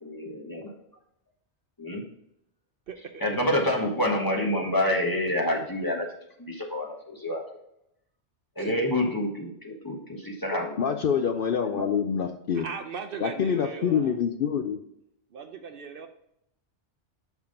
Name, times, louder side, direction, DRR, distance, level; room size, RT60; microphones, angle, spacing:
voice 1, 0.0-0.8 1.8-2.0 3.2-6.1 6.4-7.4 8.5-10.8 11.7-11.9, left 1 dB, 20° left, 0 dB, 1.3 m, -28 dB
voice 2, 2.9-3.2 8.6-8.7 12.5-14.2 15.3-16.1, right 6 dB, 60° right, 7 dB, 0.7 m, -38 dB
voice 3, 10.8-12.6 13.2-14.8, left 7 dB, 60° left, 6 dB, 0.7 m, -26 dB
5.9 x 5.8 x 3.8 m, 0.76 s
omnidirectional pair, 1.1 m